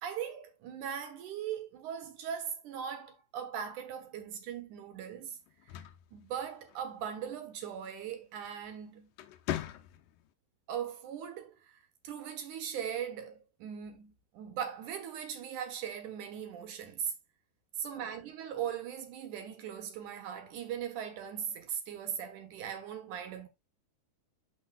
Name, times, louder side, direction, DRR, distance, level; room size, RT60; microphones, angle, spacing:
voice 1, 0.0-5.4 5.7-5.8 6.1-9.1 10.7-17.1 17.8-23.5, right 8 dB, 70° right, 2.6 m, -39 dB
sound 1, 5.5-7.0 8.5-8.7 9.1-10.3, left 13 dB, 85° left, 2.3 m, -40 dB
12.0 x 4.3 x 2.3 m
omnidirectional pair, 3.8 m